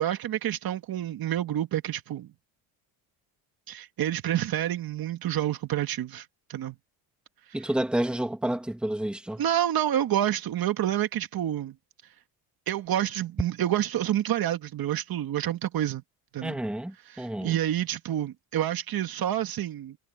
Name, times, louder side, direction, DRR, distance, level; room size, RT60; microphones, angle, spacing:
voice 1, 0.0-2.3 3.7-6.8 9.4-11.8 12.7-16.0 16.3-16.6 17.1-20.0, right 12 dB, 45° right, 2.0 m, -28 dB
voice 2, 7.5-9.4 16.4-17.6, right 1 dB, ahead, 1.9 m, -30 dB
cardioid pair, 135°, 48 cm